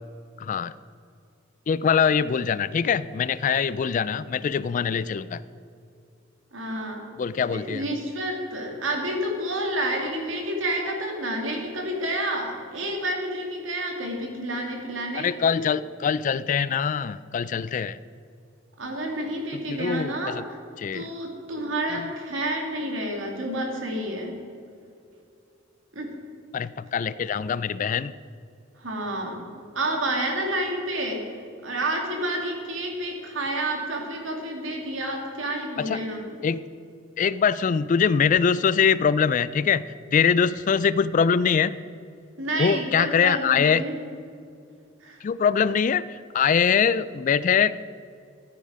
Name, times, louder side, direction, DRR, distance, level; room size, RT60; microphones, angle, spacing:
voice 1, 0.4-0.7 1.7-5.4 7.2-7.8 15.2-18.0 19.5-20.4 20.8-21.1 21.9-22.1 26.5-28.1 35.8-36.0 36.4-36.6 37.2-41.7 42.6-43.8 45.2-46.0 46.3-47.7, left 6 dB, 40° left, 17 dB, 0.3 m, -23 dB
voice 2, 6.5-7.0 7.4-15.3 18.8-20.3 20.9-24.4 25.9-26.1 28.8-29.5 29.7-31.2 31.6-36.4 42.4-43.9 45.0-45.2, right 1 dB, 80° right, 1 dB, 2.5 m, -29 dB
13.5 x 9.6 x 4.9 m, 2.5 s
head